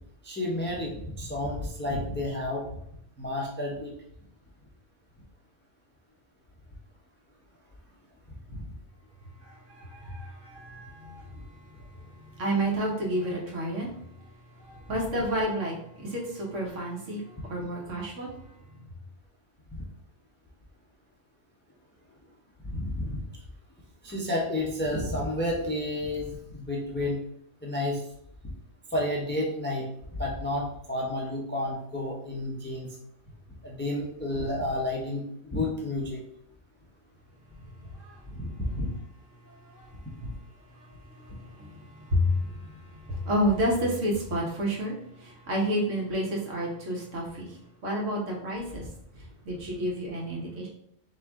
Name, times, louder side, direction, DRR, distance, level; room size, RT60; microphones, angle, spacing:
voice 1, 0.2-2.6 3.2-3.9 8.5-8.7 22.7-23.2 24.0-27.2 27.6-28.0 28.9-29.8 30.2-32.9 33.6-36.2 38.3-38.9 40.2-40.3, left 1 dB, 15° left, -2 dB, 0.5 m, -31 dB
voice 2, 9.8-11.2 12.4-13.9 14.6-17.2 17.5-18.3 39.7-39.8 41.2-41.3 41.6-41.8 42.1-42.8 43.1-44.9 45.2-47.5 47.8-48.8 49.4-50.7, equal, 75° right, -2 dB, 1.4 m, -29 dB
3.7 x 3.0 x 3.5 m, 0.72 s
omnidirectional pair, 1.3 m